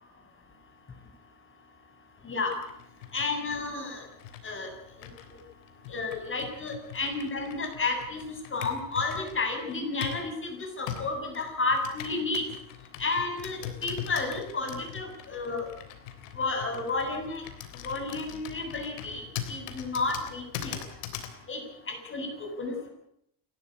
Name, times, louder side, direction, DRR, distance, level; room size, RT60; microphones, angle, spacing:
voice 1, 2.2-2.6 3.1-4.0 4.4-4.7 5.9-8.2 8.5-12.4 13.0-15.7 16.4-17.4 17.8-19.2 19.5-20.8 21.5-21.6 21.9-22.9, left 3 dB, 25° left, 4 dB, 7.6 m, -31 dB
Computer keyboard, 2.4-10.3 10.9-21.4, left 10 dB, 90° left, 3.5 m, -42 dB
29.0 x 12.5 x 8.5 m, 0.74 s
supercardioid pair, 115°, 46 cm